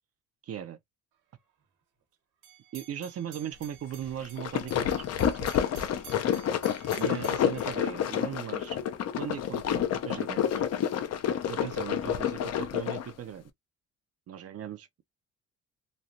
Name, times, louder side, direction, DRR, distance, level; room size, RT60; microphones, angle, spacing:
voice 1, 0.4-0.8 2.7-5.1 5.3-5.5 7.0-8.8 9.2-10.6 11.5-13.4 14.3-15.0, right 10 dB, 55° right, 0.6 m, -38 dB
sound 1, 2.4-8.7, right 9 dB, 85° right, 1.1 m, -52 dB
sound 2, 4.2-13.1, left 9 dB, 55° left, 0.6 m, -29 dB
3.1 x 2.4 x 2.6 m
cardioid pair, 90°, 30 cm